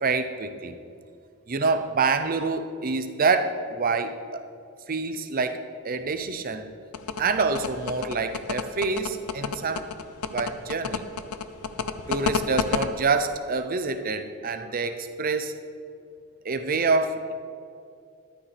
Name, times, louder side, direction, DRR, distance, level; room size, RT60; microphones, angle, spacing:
voice 1, 0.0-0.8 1.5-4.4 4.9-5.6 5.8-6.7 7.2-9.9 10.3-11.0 12.1-15.5 16.4-17.3, right 4 dB, 40° right, 9 dB, 0.6 m, -26 dB
sound 1, 6.9-12.9, left 6 dB, 90° left, 0.6 m, -28 dB
13.5 x 11.5 x 3.3 m, 2.4 s
head